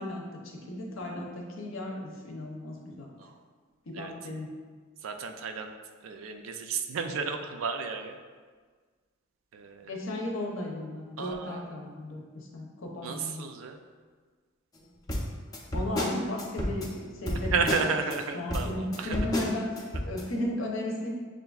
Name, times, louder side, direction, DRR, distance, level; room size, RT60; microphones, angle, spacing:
voice 1, 0.0-3.1 3.9-4.5 9.9-13.4 15.7-18.0 18.3-21.1, left 1 dB, 80° left, 0 dB, 0.7 m, -35 dB
voice 2, 5.0-5.7 6.0-8.2 9.5-10.0 11.2-11.7 13.0-13.8 17.3-19.2, right 5 dB, 80° right, 6 dB, 0.4 m, -33 dB
sound 1, 15.1-18.2 18.5-20.2, left 1 dB, 20° left, 0.4 m, -32 dB
6.7 x 2.5 x 2.3 m, 1.5 s
head